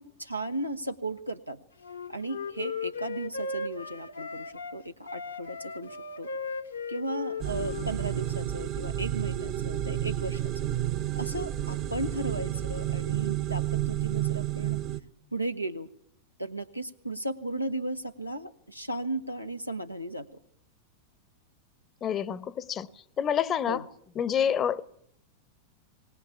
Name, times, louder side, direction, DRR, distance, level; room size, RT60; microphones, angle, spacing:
voice 1, 0.0-1.6 2.1-6.3 6.9-10.5 11.1-14.8 15.3-15.9 16.4-20.3 23.7-23.9, right 2 dB, 90° right, 1.0 m, -35 dB
Wind instrument woodwind instrument, 1.8-4.8 5.1-8.4, left 4 dB, 75° left, 1.2 m, -37 dB
sound 1, 7.4-15.0, right 12 dB, 40° right, 1.0 m, -31 dB
voice 2, 22.0-22.9 23.2-23.8 24.2-24.8, left 8 dB, 25° left, 0.8 m, -27 dB
20.5 x 19.0 x 8.4 m
figure-of-eight pair, 90°, 0 cm